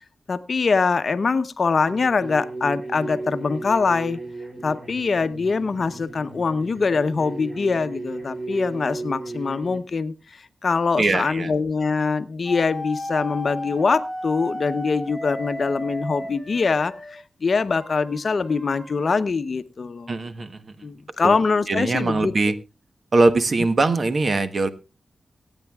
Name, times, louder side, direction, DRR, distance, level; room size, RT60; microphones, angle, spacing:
voice 1, 0.3-4.2 4.6-20.1 20.8-22.3, left 4 dB, 55° left, 11 dB, 0.7 m, -23 dB
sound 1, 1.9-9.8, right 3 dB, 35° right, 2.4 m, -35 dB
voice 2, 11.0-11.5 20.1-20.7 21.2-21.4 21.7-22.5 23.1-24.7, right 3 dB, 50° right, 10 dB, 1.1 m, -21 dB
sound 2, 12.5-17.1 17.8-19.1, left 1 dB, ahead, 5.8 m, -34 dB
24.0 x 9.1 x 2.3 m, 0.30 s
cardioid pair, 75°, 0 cm